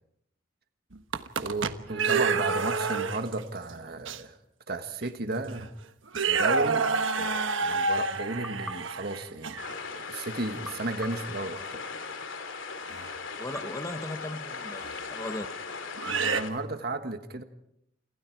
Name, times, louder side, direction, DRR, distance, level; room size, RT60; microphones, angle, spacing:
sound 1, 0.9-3.4 4.1-4.2 5.0-5.1 5.5-5.7 6.1-9.7 12.9-13.1 14.8-14.9 16.0-16.4, right 4 dB, 65° right, 1.3 m, -28 dB
voice 1, 1.4-4.4 4.7-5.7 6.2-6.9 7.2-11.8 16.0-17.4, right 2 dB, 50° right, 8 dB, 1.5 m, -34 dB
sound 2, 8.4-10.0 10.6-12.2 13.5-14.9, equal, ahead, 1.5 m, -47 dB
sound 3, 9.6-16.5, left 5 dB, 65° left, 3.2 m, -38 dB
voice 2, 13.4-15.5, left 1 dB, 15° left, 8 dB, 1.4 m, -37 dB
29.0 x 26.5 x 4.7 m, 0.77 s
head